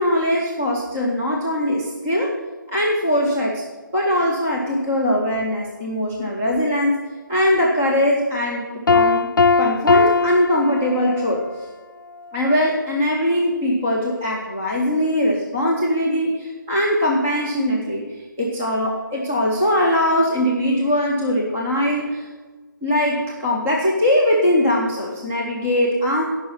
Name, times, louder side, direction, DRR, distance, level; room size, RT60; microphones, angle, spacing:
voice 1, 0.0-2.3 2.7-3.6 3.9-7.0 7.3-9.3 9.6-11.4 12.3-18.0 18.4-22.3 22.8-26.2, left 1 dB, 5° right, -4 dB, 0.4 m, -21 dB
Piano, 8.9-11.4, left 4 dB, 75° left, 0.4 m, -19 dB
13.5 x 5.5 x 7.1 m, 1.3 s
hypercardioid pair, 175°, 11 cm